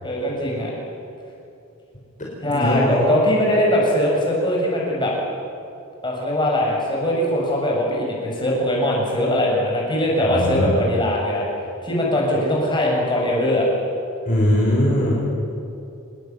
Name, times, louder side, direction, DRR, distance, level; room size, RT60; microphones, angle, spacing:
voice 1, 0.0-0.7 2.4-5.1 6.0-11.4 11.8-13.7, left 1 dB, 20° left, -2 dB, 6.9 m, -21 dB
voice 2, 2.5-2.9 10.3-10.7 14.3-15.1, left 1 dB, 35° left, -5 dB, 5.5 m, -20 dB
25.5 x 20.5 x 9.5 m, 2.7 s
head